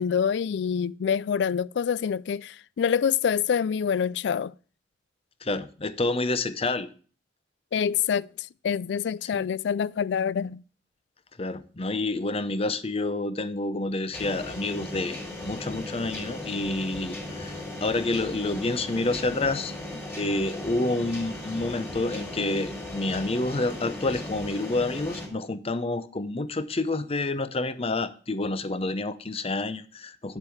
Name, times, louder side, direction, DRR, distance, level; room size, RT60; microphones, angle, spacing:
voice 1, 0.0-4.5 7.7-10.6, left 7 dB, 65° left, 0.3 m, -26 dB
voice 2, 5.4-6.9 9.3-9.4 11.4-17.5 17.8-30.4, left 2 dB, 35° left, 0.7 m, -29 dB
sound 1, 14.1-25.3, left 1 dB, 10° left, 3.2 m, -37 dB
9.0 x 7.4 x 4.9 m
head